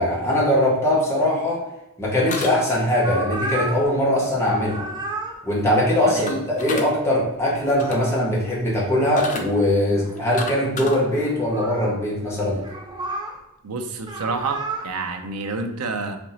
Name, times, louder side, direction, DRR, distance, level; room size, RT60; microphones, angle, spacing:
voice 1, 0.0-1.6 2.0-4.9 5.4-12.6, left 1 dB, 10° left, -6 dB, 1.2 m, -21 dB
sound 1, 2.3-3.0 6.3-6.9 7.6-8.1 9.2-9.4 10.1-11.0, left 3 dB, 35° left, 0.5 m, -31 dB
sound 2, 3.0-3.9 4.3-5.4 7.4-8.3 9.2-9.3 9.7-10.4 11.1-12.0 12.6-13.4 14.0-14.9, right 2 dB, 20° right, 0.5 m, -32 dB
voice 2, 13.6-16.2, right 3 dB, 90° right, 6 dB, 0.6 m, -29 dB
4.4 x 2.8 x 4.0 m, 0.93 s
head